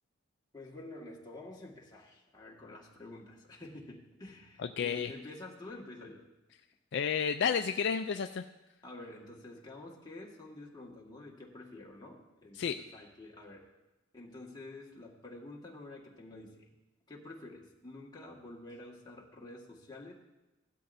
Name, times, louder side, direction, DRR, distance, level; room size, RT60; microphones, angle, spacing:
voice 1, 0.5-6.3 8.8-13.7 14.1-16.7 17.1-20.1, left 2 dB, 20° left, -2 dB, 1.7 m, -49 dB
voice 2, 4.6-5.1 6.9-8.4 12.6-12.8, left 7 dB, 55° left, 7 dB, 0.3 m, -31 dB
16.5 x 12.0 x 2.6 m, 1.0 s
head